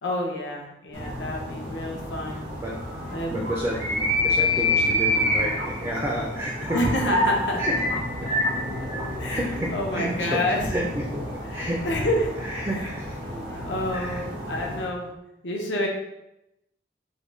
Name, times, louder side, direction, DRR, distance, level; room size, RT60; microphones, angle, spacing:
voice 1, 0.0-2.5 3.1-3.4 6.7-7.6 8.2-8.4 9.2-9.4 9.7-10.7 11.5-12.3 12.7-12.9 13.5-15.1 15.4-15.9, left 1 dB, 80° left, 0 dB, 0.6 m, -28 dB
sound 1, 0.9-14.9, left 1 dB, 90° right, 1.3 m, -28 dB
voice 2, 3.3-6.8 7.6-7.8 8.2-8.3 9.3-11.2 11.5-11.9 12.4-13.4 13.9-14.2, equal, 15° right, -2 dB, 0.4 m, -30 dB
3.7 x 2.2 x 3.1 m, 0.88 s
head